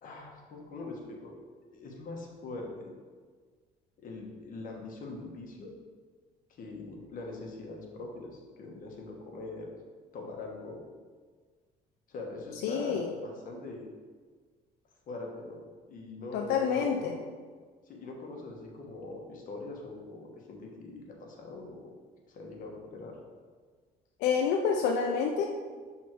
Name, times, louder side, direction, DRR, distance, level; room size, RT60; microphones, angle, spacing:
voice 1, 0.0-1.4 1.7-2.9 4.0-5.7 6.5-9.7 10.1-10.8 12.1-13.9 15.1-17.2 17.8-21.9 22.3-23.2, left 3 dB, 55° left, 0 dB, 1.2 m, -42 dB
voice 2, 12.6-13.1 16.3-17.2 24.2-25.5, left 6 dB, 85° left, 2 dB, 0.5 m, -28 dB
6.2 x 3.6 x 4.5 m, 1.6 s
cardioid pair, 110°, 17 cm